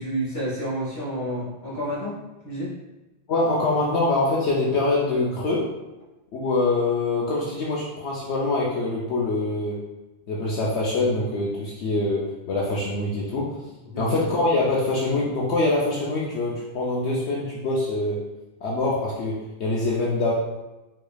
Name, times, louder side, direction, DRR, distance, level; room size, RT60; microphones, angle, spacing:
voice 1, 0.0-2.7 13.9-14.2, equal, 15° left, -8 dB, 1.4 m, -30 dB
voice 2, 3.3-5.7 6.3-9.8 10.3-13.5 14.0-18.2 18.6-20.3, left 2 dB, 65° left, -4 dB, 0.9 m, -24 dB
4.8 x 3.4 x 2.3 m, 1.0 s
omnidirectional pair, 1.3 m